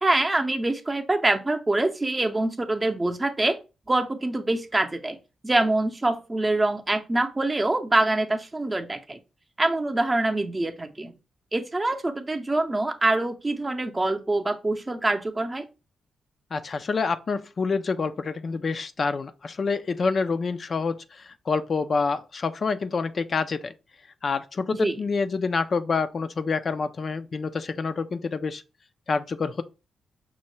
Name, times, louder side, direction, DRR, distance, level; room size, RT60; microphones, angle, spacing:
voice 1, 0.0-3.6 3.9-5.2 5.4-9.2 9.6-11.1 11.5-15.7 24.8-25.0, right 2 dB, 25° right, 0.6 m, -25 dB
voice 2, 16.5-23.7 24.2-28.6 29.1-29.6, left 4 dB, 50° left, 0.3 m, -27 dB
5.4 x 2.1 x 3.1 m
supercardioid pair, 55°, 0 cm